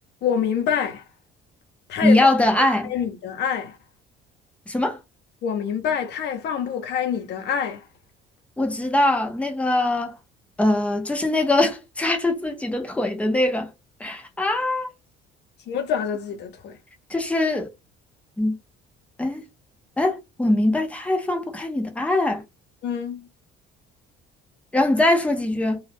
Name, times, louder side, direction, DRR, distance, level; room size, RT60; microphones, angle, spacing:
voice 1, 0.2-1.0 1.9-2.3 2.9-3.8 5.4-7.8 15.7-16.8 22.8-23.3, left 7 dB, 60° left, 0.9 m, -26 dB
voice 2, 2.0-2.9 4.7-5.0 8.6-10.2 10.6-13.7 14.0-14.9 17.1-17.7 18.4-18.6 19.2-19.4 20.0-22.4 24.7-25.8, left 1 dB, 5° left, 0.7 m, -22 dB
2.4 x 2.3 x 3.4 m
cardioid pair, 135°, 20 cm